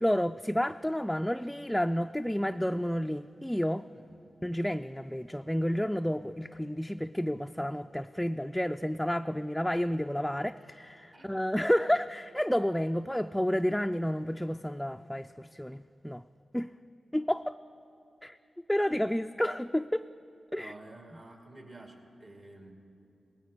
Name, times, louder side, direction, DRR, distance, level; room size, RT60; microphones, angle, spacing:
voice 1, 0.0-3.8 4.4-16.2 16.5-16.7 17.1-17.6 18.2-18.4 18.7-20.1 20.5-20.7, equal, 5° left, 6 dB, 0.3 m, -30 dB
voice 2, 20.6-22.7, right 2 dB, 55° right, 1 dB, 2.5 m, -50 dB
19.0 x 17.0 x 3.8 m, 2.6 s
supercardioid pair, 40°, 0 cm